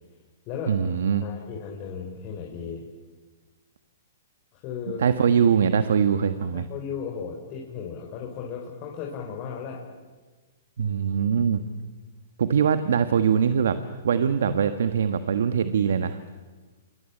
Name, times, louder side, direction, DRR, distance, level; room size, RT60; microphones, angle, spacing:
voice 1, 0.7-1.2 5.0-6.6 10.8-11.6 12.4-13.8 14.0-16.2, right 7 dB, 75° right, 10 dB, 1.5 m, -22 dB
voice 2, 1.2-2.8 4.5-5.0 6.5-9.8, left 7 dB, 35° left, -1 dB, 4.9 m, -35 dB
28.5 x 23.0 x 8.6 m, 1.3 s
hypercardioid pair, 140°, 0 cm